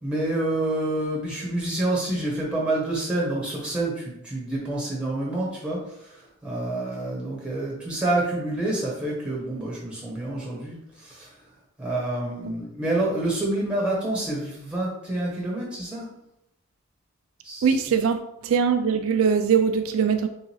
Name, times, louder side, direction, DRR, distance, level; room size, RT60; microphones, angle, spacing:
voice 1, 0.0-11.3 11.8-16.1 17.4-17.8, right 1 dB, 5° right, 1.3 m, -28 dB
voice 2, 17.6-20.3, right 6 dB, 65° right, 0.3 m, -22 dB
3.7 x 2.7 x 4.5 m
head